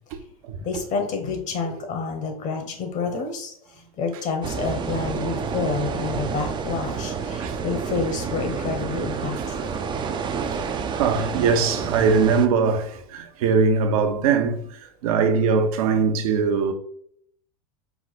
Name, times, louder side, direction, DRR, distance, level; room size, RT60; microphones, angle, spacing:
voice 1, 0.6-3.5 4.0-9.4, left 4 dB, 40° left, 1.1 m, -28 dB
sound 1, 4.4-12.5, right 6 dB, 25° right, 0.5 m, -29 dB
voice 2, 9.4-9.8 10.1-16.7, right 5 dB, 70° right, 0.8 m, -22 dB
4.7 x 2.2 x 4.1 m
hypercardioid pair, 105°, 19 cm